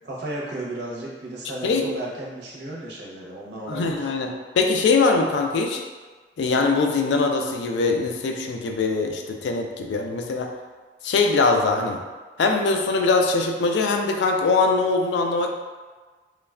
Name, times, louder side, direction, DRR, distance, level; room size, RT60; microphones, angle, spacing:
voice 1, 0.0-4.1, right 1 dB, 80° right, -4 dB, 0.6 m, -34 dB
voice 2, 3.7-5.8 6.4-10.5 11.0-12.0 12.4-15.5, left 3 dB, 85° left, 3 dB, 0.3 m, -22 dB
3.1 x 2.1 x 2.3 m, 1.4 s
head